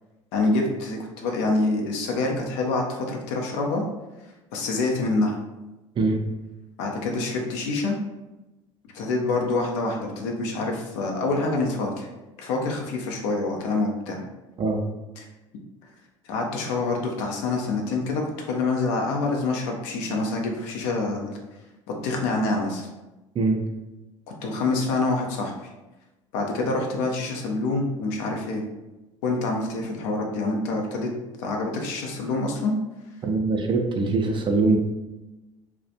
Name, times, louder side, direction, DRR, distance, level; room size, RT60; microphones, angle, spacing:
voice 1, 0.3-3.8 4.5-5.4 6.8-7.9 8.9-12.1 12.4-14.2 15.2-15.3 16.3-21.3 21.9-22.9 24.4-25.5 26.3-28.6 29.2-31.1 31.4-32.8, left 3 dB, 60° left, 1 dB, 0.5 m, -26 dB
voice 2, 33.2-34.8, right 3 dB, 30° right, 3 dB, 0.4 m, -22 dB
2.3 x 2.1 x 2.7 m, 1.1 s
figure-of-eight pair, 60°, 17 cm